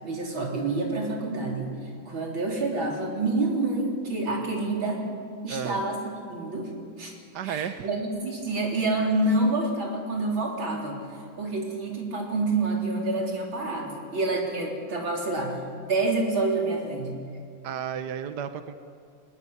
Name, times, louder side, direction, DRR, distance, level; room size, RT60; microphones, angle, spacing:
voice 1, 0.0-1.7 2.1-5.0 5.4-6.7 7.0-7.1 7.4-11.0 11.4-15.6 15.9-17.1, right 2 dB, 80° right, -1 dB, 4.7 m, -27 dB
voice 2, 5.5-5.8 7.3-7.9 17.6-18.8, right 8 dB, 65° right, 9 dB, 1.4 m, -32 dB
21.0 x 21.0 x 9.8 m, 2.3 s
omnidirectional pair, 2.1 m